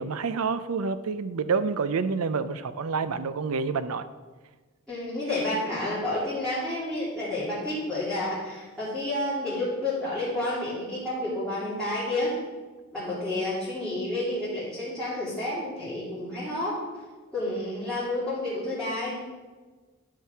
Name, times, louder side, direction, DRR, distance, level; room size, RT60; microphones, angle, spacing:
voice 1, 0.0-4.1, right 5 dB, 85° right, 13 dB, 0.5 m, -28 dB
voice 2, 4.9-12.3 12.9-16.8 17.3-19.2, left 1 dB, 5° left, -12 dB, 2.9 m, -30 dB
11.5 x 4.7 x 5.8 m, 1.3 s
head